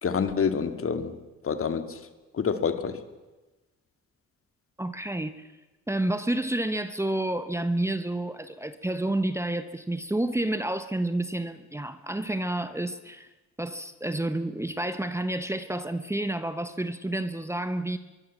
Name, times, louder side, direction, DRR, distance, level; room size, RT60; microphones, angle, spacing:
voice 1, 0.0-1.1 1.4-2.0 2.3-3.0, left 6 dB, 45° left, 8 dB, 2.3 m, -27 dB
voice 2, 4.8-5.5 5.9-13.3 13.6-18.0, right 1 dB, 10° right, 10 dB, 1.2 m, -29 dB
23.5 x 23.0 x 7.5 m, 1.1 s
cardioid pair, 90°, 30 cm